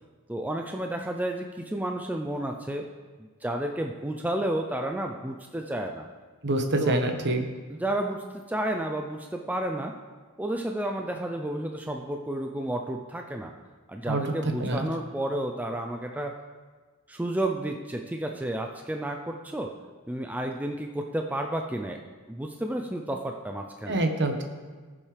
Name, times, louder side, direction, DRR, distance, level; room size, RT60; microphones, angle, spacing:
voice 1, 0.3-2.9 3.2-6.1 6.8-7.0 7.7-9.9 10.4-13.5 13.9-16.4 17.1-19.7 20.1-22.0 22.3-24.0, right 1 dB, 5° right, 3 dB, 0.4 m, -31 dB
voice 2, 6.4-7.4 14.1-14.2 14.6-14.8 23.9-24.4, right 1 dB, 50° right, 5 dB, 1.2 m, -25 dB
20.0 x 7.3 x 3.4 m, 1.4 s
head